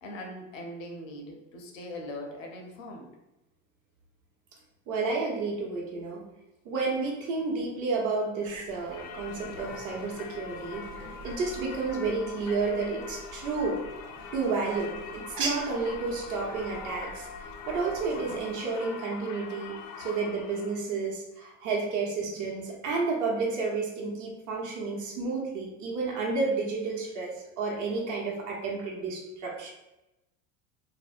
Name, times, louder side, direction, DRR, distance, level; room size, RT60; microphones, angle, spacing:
voice 1, 0.0-3.1, left 1 dB, 85° left, 2 dB, 0.7 m, -41 dB
voice 2, 4.9-6.2 6.6-13.8 14.3-29.7, right 4 dB, 50° right, -2 dB, 0.9 m, -31 dB
sound 1, 8.4-18.5, right 3 dB, 80° right, 0.6 m, -43 dB
Singing / Church bell, 8.9-20.8, left 6 dB, 50° left, 0.4 m, -43 dB
2.6 x 2.1 x 2.4 m, 0.94 s
hypercardioid pair, 80°, 38 cm